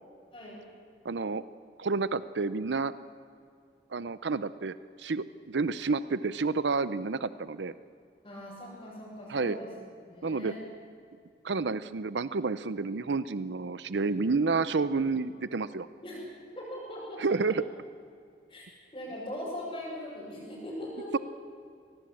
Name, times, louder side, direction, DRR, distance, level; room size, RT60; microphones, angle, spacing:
voice 1, 0.3-0.6 8.2-9.7 10.1-10.6 16.0-16.3 16.6-17.5 18.5-18.7 18.9-21.2, equal, 25° left, -10 dB, 7.3 m, -40 dB
voice 2, 1.0-1.4 1.8-2.9 3.9-7.7 9.3-9.6 10.2-10.5 11.4-15.9 17.2-17.6, right 4 dB, 90° right, 15 dB, 0.6 m, -30 dB
24.5 x 19.0 x 8.7 m, 2.3 s
head